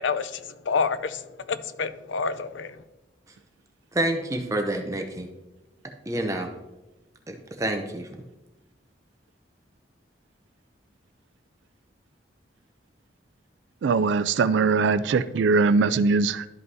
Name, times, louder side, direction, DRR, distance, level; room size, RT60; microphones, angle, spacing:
voice 1, 0.0-2.8, left 5 dB, 85° left, 0.5 m, -28 dB
voice 2, 3.9-5.3 6.1-6.5 7.3-8.2, right 1 dB, 15° right, 0.6 m, -28 dB
voice 3, 13.8-16.5, right 4 dB, 80° right, 0.3 m, -21 dB
12.0 x 5.5 x 2.7 m
head